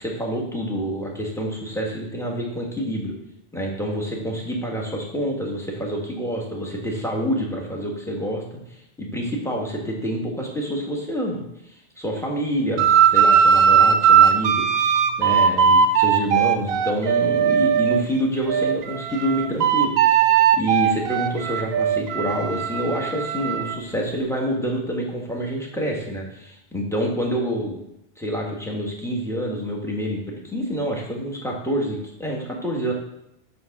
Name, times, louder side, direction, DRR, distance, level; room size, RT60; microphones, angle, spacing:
voice 1, 0.0-3.1 3.5-8.6 9.0-11.4 12.0-14.9 15.2-20.2 20.6-27.8 28.2-32.9, equal, ahead, -2 dB, 1.4 m, -27 dB
sound 1, 12.8-18.0 18.5-23.8, right 7 dB, 65° right, 0.8 m, -18 dB
7.8 x 3.8 x 5.9 m, 0.82 s
omnidirectional pair, 1.2 m